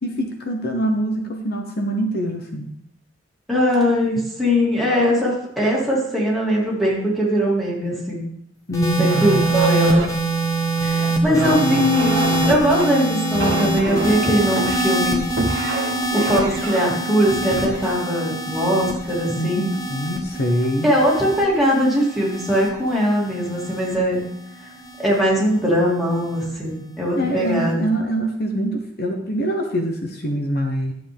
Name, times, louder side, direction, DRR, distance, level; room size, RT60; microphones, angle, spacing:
voice 1, 0.0-2.7 8.7-9.5 11.2-11.9 19.4-20.9 27.1-30.9, equal, 55° left, 3 dB, 1.0 m, -24 dB
voice 2, 3.5-8.2 9.0-10.0 10.8-12.2 12.5-15.2 16.1-19.7 20.8-24.2 25.0-27.9, equal, ahead, -6 dB, 2.9 m, -20 dB
sound 1, 8.7-25.2 26.1-26.5, right 2 dB, 20° left, 1.4 m, -25 dB
sound 2, 9.0-19.3 19.9-20.2 20.6-21.1, right 2 dB, 65° right, 1.4 m, -30 dB
12.0 x 7.7 x 3.5 m, 0.71 s
head